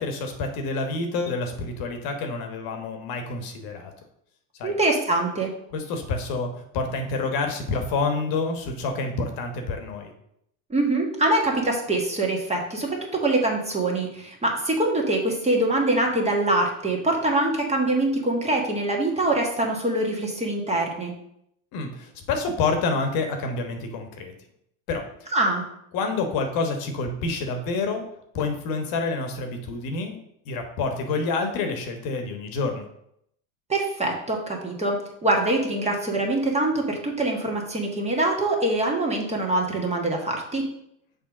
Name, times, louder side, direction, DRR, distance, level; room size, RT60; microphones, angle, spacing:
voice 1, 0.0-3.9 4.6-4.7 5.7-10.1 21.7-24.3 24.9-25.1 25.9-28.1 28.3-30.2 30.4-32.9, left 3 dB, 55° left, 5 dB, 1.3 m, -28 dB
voice 2, 4.6-5.5 10.7-21.1 25.3-25.6 33.7-40.7, right 2 dB, 15° right, 0 dB, 1.5 m, -24 dB
6.5 x 3.4 x 6.0 m, 0.75 s
supercardioid pair, 110°, 42 cm